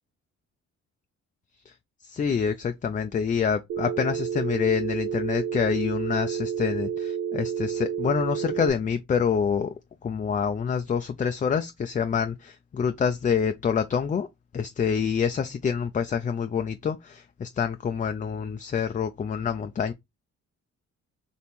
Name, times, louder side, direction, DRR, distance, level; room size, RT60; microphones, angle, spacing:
voice 1, 2.0-9.7 10.0-14.3 14.5-19.9, left 7 dB, 25° left, 0.4 m, -27 dB
Telephone, 3.7-8.7, right 8 dB, 80° right, 0.7 m, -30 dB
4.3 x 3.0 x 3.4 m
cardioid pair, 90°, 30 cm